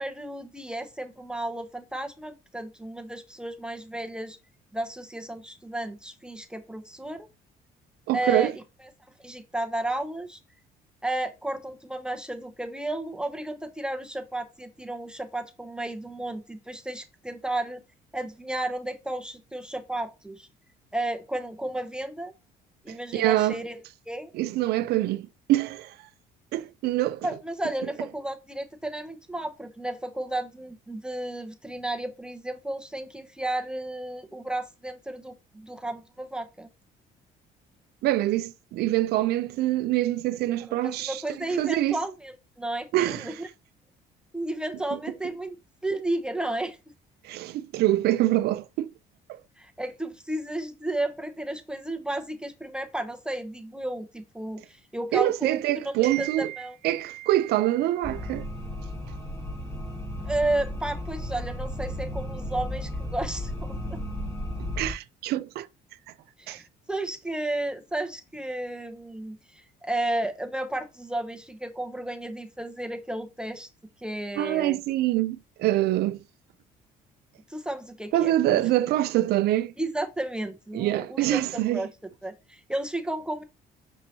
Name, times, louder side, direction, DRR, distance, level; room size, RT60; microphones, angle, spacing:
voice 1, 0.0-4.4 4.7-7.3 8.1-8.5 9.2-10.4 11.0-17.8 18.1-20.5 20.9-22.3 22.8-23.8 24.1-24.3 27.2-36.7 40.7-43.5 44.3-45.6 45.8-46.8 49.6-56.8 60.2-64.0 66.4-73.7 74.0-74.8 77.5-78.6 79.8-81.9 82.2-83.4, right 1 dB, 5° right, 0.7 m, -33 dB
voice 2, 8.1-8.5 22.9-23.6 24.3-25.9 26.5-27.3 38.0-41.2 41.6-42.0 42.9-43.4 47.2-48.9 55.1-58.5 64.8-65.7 66.5-66.6 74.4-76.2 78.1-79.7 80.7-81.8, right 15 dB, 70° right, 0.4 m, -25 dB
sound 1, 58.0-64.9, left 1 dB, 20° left, 1.4 m, -34 dB
6.3 x 2.7 x 2.8 m
cardioid pair, 110°, 17 cm